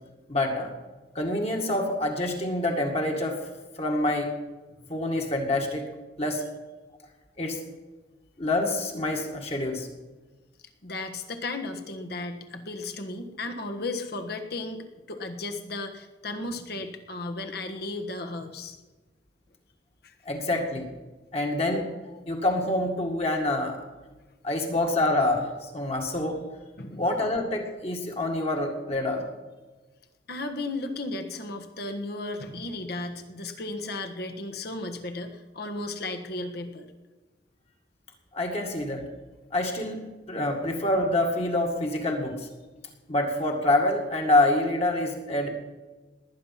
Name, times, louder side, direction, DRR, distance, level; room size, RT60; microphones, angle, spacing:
voice 1, 0.3-0.7 1.2-3.4 3.8-4.3 4.9-5.9 6.2-6.4 7.4-7.6 8.4-9.9 20.3-20.9 21.3-21.8 22.3-23.8 24.4-26.4 27.0-29.3 38.3-39.0 39.5-40.0 40.3-42.5 43.1-45.5, left 1 dB, 35° left, 1 dB, 1.9 m, -26 dB
voice 2, 10.8-18.8 20.0-20.1 26.8-27.0 30.3-36.9, left 2 dB, 55° left, 5 dB, 1.5 m, -35 dB
19.0 x 9.9 x 5.8 m, 1.2 s
head